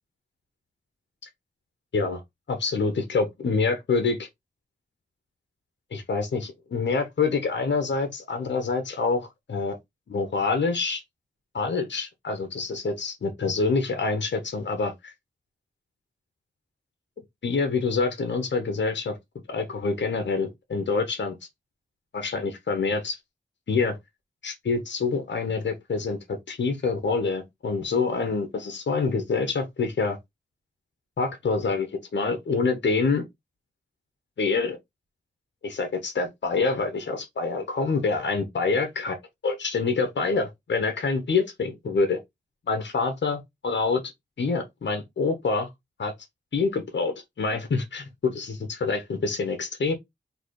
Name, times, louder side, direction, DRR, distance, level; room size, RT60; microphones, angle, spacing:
voice 1, 2.5-4.3 5.9-9.8 10.1-11.0 11.5-15.1 17.4-19.2 19.5-21.3 22.1-23.2 23.7-24.0 24.4-30.2 31.2-31.9 32.1-33.2 34.4-34.8 35.6-39.2 39.4-42.2 42.7-44.0 44.4-45.7 46.0-46.1 46.5-49.9, left 4 dB, 80° left, 1.0 m, -26 dB
4.0 x 3.0 x 3.1 m
cardioid pair, 50°, 18 cm